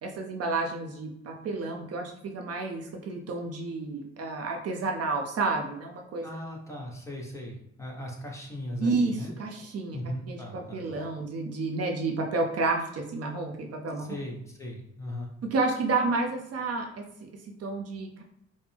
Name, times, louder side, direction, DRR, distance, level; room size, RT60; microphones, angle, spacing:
voice 1, 0.0-6.3 8.8-10.0 10.3-14.1 15.5-18.2, right 3 dB, 55° right, 2 dB, 0.6 m, -30 dB
voice 2, 6.2-9.3 9.6-9.7 9.9-11.0 14.0-15.3, equal, 10° left, -2 dB, 1.1 m, -38 dB
5.0 x 2.1 x 3.4 m, 0.77 s
cardioid pair, 90°, 30 cm